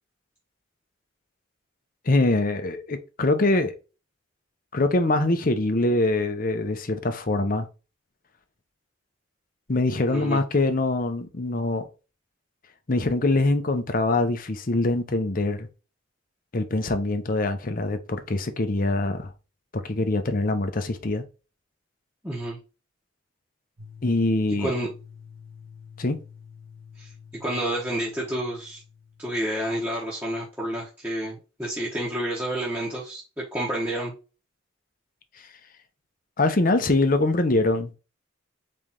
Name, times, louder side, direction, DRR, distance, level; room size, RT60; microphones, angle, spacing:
voice 1, 2.1-3.7 4.7-7.7 9.7-11.8 12.9-15.7 16.5-19.3 19.7-21.2 24.0-24.7 26.0-26.2 36.4-38.0, left 2 dB, 45° left, 0.7 m, -23 dB
voice 2, 10.1-10.4 22.2-22.6 24.6-24.9 27.0-28.8 29.2-34.1, right 1 dB, 10° right, 1.1 m, -29 dB
sound 1, 23.8-29.6, left 6 dB, 80° right, 2.4 m, -48 dB
4.3 x 3.3 x 3.7 m
head